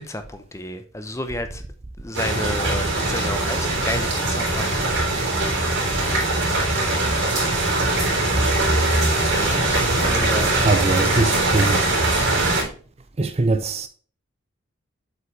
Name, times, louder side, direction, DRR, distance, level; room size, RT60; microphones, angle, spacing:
voice 1, 0.0-1.6 2.0-5.0 9.3-10.5, left 1 dB, 15° left, 0.8 m, -31 dB
sound 1, 2.1-12.6, right 2 dB, 70° right, 3.8 m, -21 dB
voice 2, 10.6-11.8 13.2-13.9, right 3 dB, 30° right, 0.6 m, -22 dB
7.8 x 5.6 x 3.3 m
head